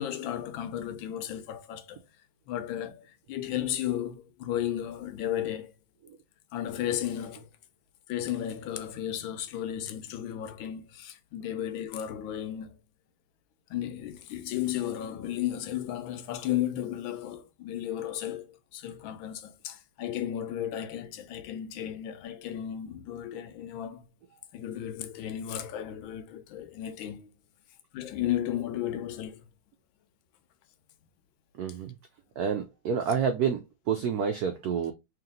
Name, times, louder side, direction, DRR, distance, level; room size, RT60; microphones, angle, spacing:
voice 1, 0.0-2.0 2.5-5.7 6.5-7.5 8.1-12.7 13.7-24.1 24.5-27.3 27.9-29.4, left 11 dB, 80° left, 1.3 m, -34 dB
voice 2, 31.6-31.9 32.4-34.9, right 7 dB, 85° right, 0.8 m, -29 dB
3.3 x 2.9 x 3.7 m
omnidirectional pair, 2.2 m